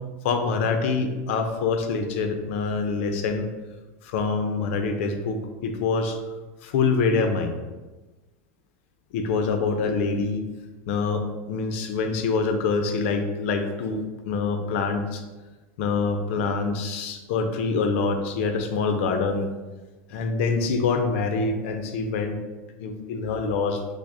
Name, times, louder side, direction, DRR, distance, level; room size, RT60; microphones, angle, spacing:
voice 1, 0.2-3.5 4.0-6.2 6.6-7.6 9.1-10.4 10.9-15.2 15.8-19.5 20.1-22.4 22.8-23.8, left 4 dB, 60° left, 6 dB, 0.5 m, -25 dB
6.0 x 2.0 x 2.6 m, 1.2 s
supercardioid pair, 160°, 8 cm